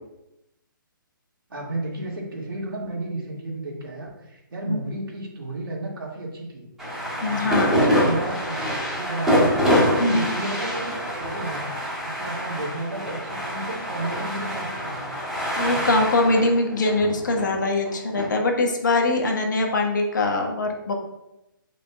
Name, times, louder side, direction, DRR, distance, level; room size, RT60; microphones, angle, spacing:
voice 1, 1.5-6.7 7.2-8.5 8.9-11.7 12.0-15.2 15.6-16.0, right 2 dB, 85° right, -2 dB, 2.1 m, -33 dB
sound 1, 6.8-18.3, equal, 5° right, 2.2 m, -25 dB
voice 2, 7.2-7.7 10.0-10.4 15.6-20.9, left 2 dB, 60° left, 2 dB, 1.4 m, -22 dB
8.2 x 5.1 x 2.3 m, 0.90 s
hypercardioid pair, 180°, 11 cm